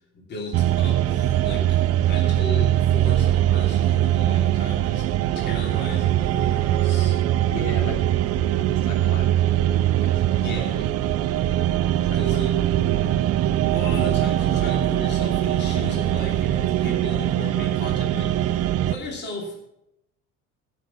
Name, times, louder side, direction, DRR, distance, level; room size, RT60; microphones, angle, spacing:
voice 1, 0.1-5.1 5.3-7.2 10.4-10.9 12.1-12.6 13.7-19.6, left 2 dB, 35° left, -1 dB, 3.1 m, -36 dB
sound 1, 0.5-18.9, right 12 dB, 50° right, 0.7 m, -22 dB
voice 2, 7.5-8.0 8.6-10.4 10.8-10.9 12.0-13.2, left 3 dB, 60° left, 1 dB, 3.5 m, -38 dB
sound 2, 8.6-18.7, left 11 dB, 20° right, 1.3 m, -52 dB
16.0 x 6.3 x 7.2 m, 0.81 s
cardioid pair, 160°, 32 cm